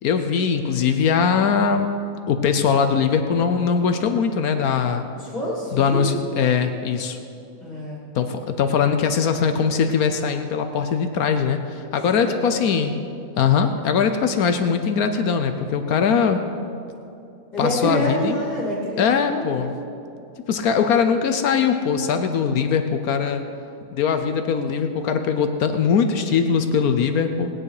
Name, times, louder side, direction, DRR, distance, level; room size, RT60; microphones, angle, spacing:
voice 1, 0.0-1.9 2.3-5.0 5.7-7.2 8.1-12.9 13.4-16.4 17.6-18.4 19.0-19.7 20.5-23.4 23.9-27.5, left 6 dB, 75° left, 7 dB, 1.2 m, -21 dB
voice 2, 5.2-6.0 7.6-8.0 12.2-12.5 17.5-19.7, equal, 25° left, -5 dB, 3.0 m, -27 dB
19.5 x 9.5 x 4.9 m, 2.6 s
omnidirectional pair, 1.6 m